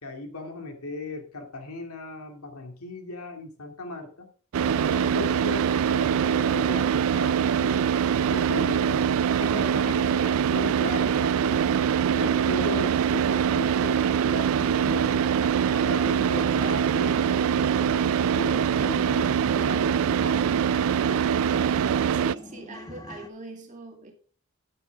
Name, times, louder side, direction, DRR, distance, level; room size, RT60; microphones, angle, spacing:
voice 1, 0.0-4.3 4.7-7.9 8.3-9.0 9.4-11.7 12.1-15.3 15.8-18.1 18.3-20.5, left 2 dB, 80° left, 2.4 m, -37 dB
Car / Idling, 4.5-22.3, right 8 dB, 70° right, 0.3 m, -23 dB
sound 1, 14.2-23.3, left 1 dB, 15° left, 1.0 m, -44 dB
voice 2, 21.6-24.1, right 2 dB, 35° right, 2.2 m, -43 dB
9.9 x 9.0 x 3.5 m
head